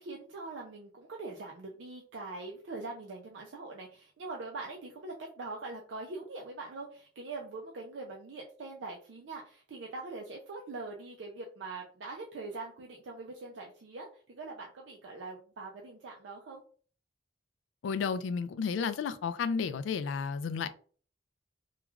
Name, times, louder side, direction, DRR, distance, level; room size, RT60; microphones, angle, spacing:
voice 1, 0.0-16.6, right 3 dB, 70° right, 0.4 m, -43 dB
voice 2, 17.8-20.7, left 5 dB, 75° left, 0.3 m, -32 dB
3.0 x 2.3 x 2.3 m
head